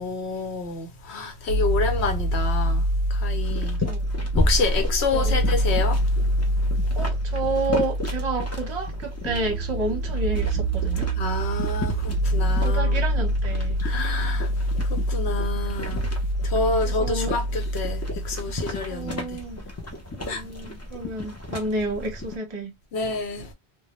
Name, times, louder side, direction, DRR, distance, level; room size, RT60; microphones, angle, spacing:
voice 1, 0.0-2.8 3.1-3.8 4.4-6.0 11.2-13.0 13.8-14.5 14.9-16.0 16.4-19.4 20.3-20.4 22.9-23.5, left 3 dB, 80° left, 1.0 m, -28 dB
sound 1, 1.5-19.4, right 1 dB, 65° right, 0.7 m, -26 dB
sound 2, 3.3-22.4, left 1 dB, 20° left, 0.4 m, -33 dB
voice 2, 7.0-11.1 12.6-13.8 16.8-17.3 18.9-19.6 20.2-22.7, right 2 dB, 30° right, 0.8 m, -30 dB
2.2 x 2.1 x 2.9 m
omnidirectional pair, 1.1 m